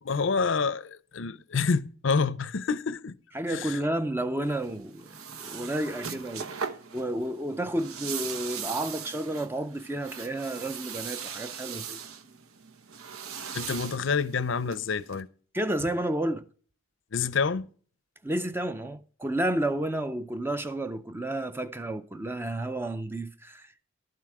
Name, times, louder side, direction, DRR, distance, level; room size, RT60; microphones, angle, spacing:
voice 1, 0.0-3.1 3.5-3.8 13.5-15.3 17.1-17.7, left 5 dB, 60° left, 0.5 m, -28 dB
voice 2, 3.3-6.5 6.9-12.0 15.5-16.5 18.2-23.8, right 1 dB, 10° right, 0.4 m, -31 dB
sound 1, 4.4-15.2, right 7 dB, 85° right, 1.0 m, -40 dB
12.0 x 7.6 x 4.7 m
head